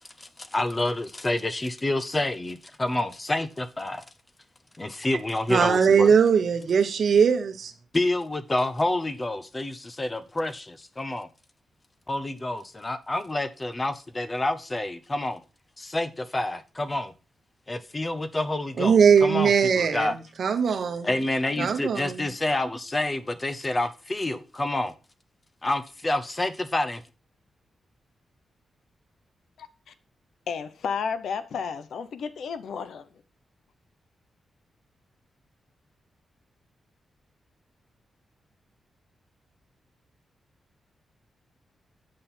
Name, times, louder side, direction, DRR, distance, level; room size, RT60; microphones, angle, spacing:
voice 1, 0.2-4.0 4.8-6.1 7.9-11.3 12.1-15.4 15.8-17.1 17.7-20.2 21.0-24.9 25.6-27.0, left 2 dB, 25° left, 0.8 m, -28 dB
voice 2, 5.5-7.7 18.8-21.1 21.6-22.3, right 6 dB, 65° right, 1.1 m, -20 dB
voice 3, 29.6-29.9 30.5-33.2, left 6 dB, 80° left, 0.7 m, -32 dB
8.6 x 5.6 x 4.4 m
cardioid pair, 80°, 0 cm